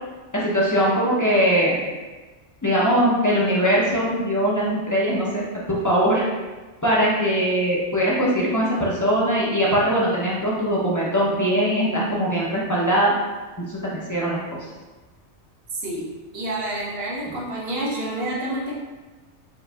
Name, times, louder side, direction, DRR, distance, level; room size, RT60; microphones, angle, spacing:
voice 1, 0.3-1.8 2.6-6.2 6.8-13.1 13.7-14.4, equal, 35° left, -6 dB, 0.3 m, -21 dB
voice 2, 15.7-18.8, right 1 dB, 60° right, -3 dB, 0.8 m, -29 dB
4.6 x 2.5 x 2.2 m, 1.3 s
omnidirectional pair, 1.2 m